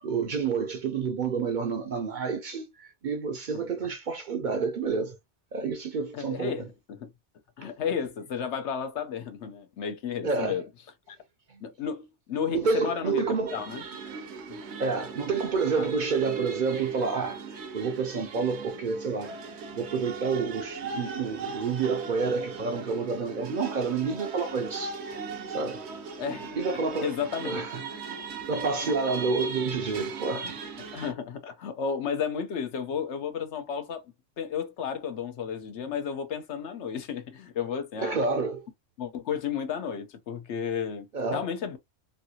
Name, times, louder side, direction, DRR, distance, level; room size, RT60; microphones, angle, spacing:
voice 1, 0.0-5.2 5.5-6.7 10.2-10.6 11.5-11.6 12.5-13.6 14.8-19.4 19.7-25.0 25.5-25.8 26.5-27.1 27.4-27.8 28.5-30.5 38.0-38.7 41.1-41.5, right 5 dB, 55° right, 0.6 m, -29 dB
voice 2, 6.1-7.1 7.6-10.7 11.1-11.2 11.6-13.8 14.5-14.6 15.8-15.9 26.2-26.4 27.0-27.7 30.3-30.5 30.9-38.2 39.0-41.1 41.3-41.8, left 7 dB, 80° left, 1.0 m, -33 dB
sound 1, 13.5-31.1, right 4 dB, 75° right, 1.0 m, -39 dB
3.2 x 2.7 x 2.7 m
omnidirectional pair, 1.2 m